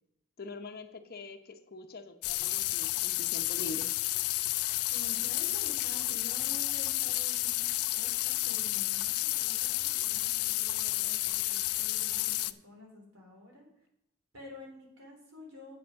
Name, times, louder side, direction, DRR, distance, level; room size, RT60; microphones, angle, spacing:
voice 1, 0.4-3.9, left 2 dB, 45° left, 7 dB, 0.8 m, -44 dB
sound 1, 2.2-12.5, left 18 dB, 75° left, 0.4 m, -31 dB
voice 2, 4.9-13.7 14.3-15.8, equal, 70° right, -1 dB, 3.8 m, -50 dB
8.3 x 7.1 x 6.3 m, 0.76 s
head